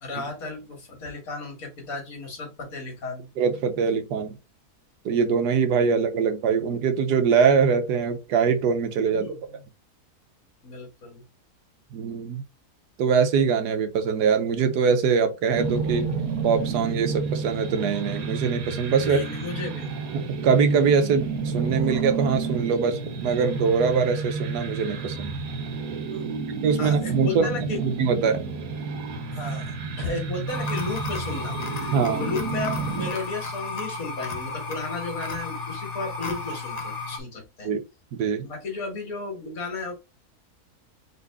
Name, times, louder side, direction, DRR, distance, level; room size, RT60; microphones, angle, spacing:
voice 1, 0.0-3.3 9.1-9.6 10.6-11.2 19.0-20.1 26.1-27.8 29.3-29.7 30.0-37.7 38.4-39.9, left 3 dB, 60° left, 1.9 m, -34 dB
voice 2, 3.4-4.3 5.0-9.3 11.9-12.4 13.0-16.1 16.4-19.2 20.1-25.3 26.6-27.5 27.8-28.5 31.9-32.3 37.6-37.8 38.1-38.5, right 6 dB, 90° right, 1.3 m, -23 dB
sound 1, 15.5-33.1, right 4 dB, 70° right, 1.3 m, -30 dB
sound 2, 30.5-37.2, left 3 dB, 40° left, 0.5 m, -33 dB
4.0 x 3.0 x 3.4 m
omnidirectional pair, 1.7 m